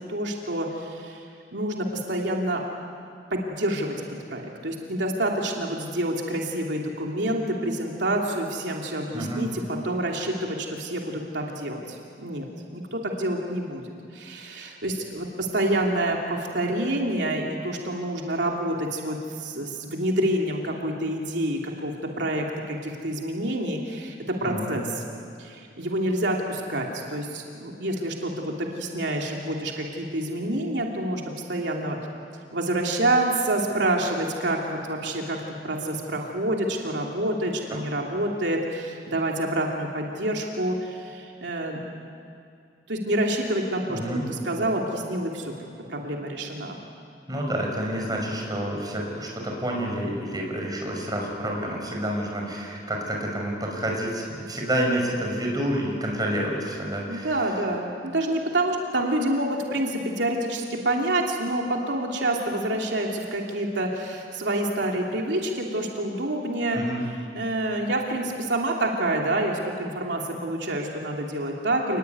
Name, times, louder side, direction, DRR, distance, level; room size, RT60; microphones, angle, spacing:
voice 1, 0.1-1.2 1.5-2.6 3.3-12.4 12.7-24.8 25.4-31.2 31.5-32.0 32.5-35.4 35.6-42.0 42.9-44.2 44.4-46.8 57.1-66.8 67.3-72.0, right 1 dB, 85° right, 0 dB, 3.0 m, -27 dB
voice 2, 9.1-9.4 24.4-24.8 43.9-44.2 47.3-57.5 66.7-67.0, right 1 dB, 20° right, 0 dB, 6.0 m, -29 dB
28.5 x 20.5 x 9.5 m, 2.5 s
head